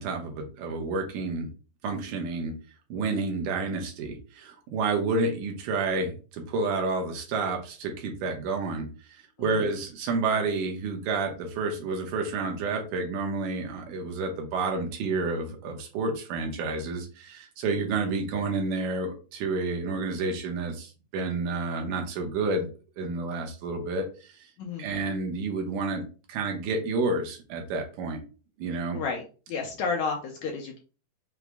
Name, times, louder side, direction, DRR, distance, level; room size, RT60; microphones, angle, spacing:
voice 1, 0.0-1.5 1.8-2.5 2.9-22.7 23.0-24.3 24.8-26.0 26.3-28.2 28.6-29.0, right 3 dB, 75° right, 3 dB, 2.2 m, -30 dB
voice 2, 9.4-9.7 24.6-24.9 28.9-30.8, left 5 dB, 75° left, 1 dB, 1.7 m, -32 dB
5.9 x 2.0 x 3.4 m, 0.35 s
omnidirectional pair, 3.8 m